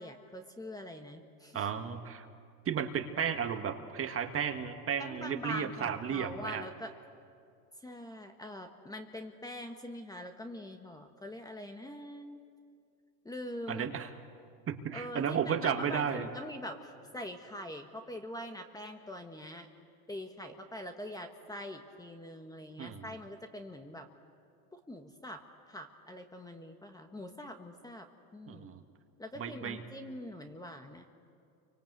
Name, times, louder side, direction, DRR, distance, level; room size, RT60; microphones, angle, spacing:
voice 1, 0.0-1.7 5.1-7.0 7.8-12.4 13.2-13.9 14.9-19.7 20.1-24.1 24.7-25.4 25.7-28.0 28.3-28.7 29.2-31.1, equal, 10° left, 5 dB, 1.4 m, -43 dB
voice 2, 1.5-2.2 2.6-6.6 13.7-14.1 14.7-16.3 22.8-23.1 28.5-28.8 29.4-29.8, right 7 dB, 30° right, 7 dB, 1.7 m, -33 dB
29.5 x 24.5 x 8.1 m, 2.3 s
supercardioid pair, 125°, 47 cm